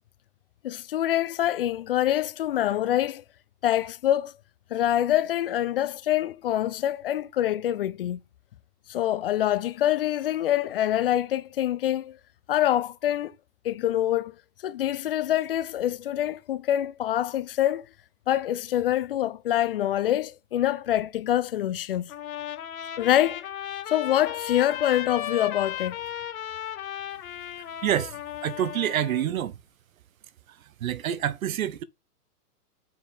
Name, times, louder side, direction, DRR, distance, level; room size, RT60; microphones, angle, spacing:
voice 1, 0.6-3.2 3.6-4.3 4.7-8.2 8.9-12.2 12.5-13.3 13.6-14.3 14.6-17.8 18.3-22.1 23.0-23.5 23.9-26.0, left 12 dB, 40° left, 0.5 m, -25 dB
Trumpet, 22.1-29.3, left 11 dB, 60° left, 1.1 m, -35 dB
voice 2, 27.8-28.1 28.4-29.6 30.5-31.8, right 11 dB, 60° right, 0.8 m, -27 dB
7.3 x 4.4 x 3.6 m
hypercardioid pair, 140°, 46 cm